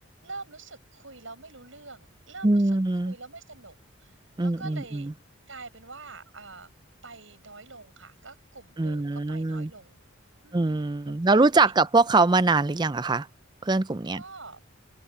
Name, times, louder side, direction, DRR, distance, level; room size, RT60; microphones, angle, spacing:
voice 1, 0.2-2.8 3.0-4.1 4.4-5.1 5.5-6.7 7.0-10.0 10.4-11.2 11.6-11.8 14.2-14.6, right 3 dB, 65° right, 7.8 m, -45 dB
voice 2, 2.4-3.1 4.4-5.1 8.8-9.7 10.5-13.3 13.6-14.2, right 3 dB, 20° right, 0.5 m, -23 dB
head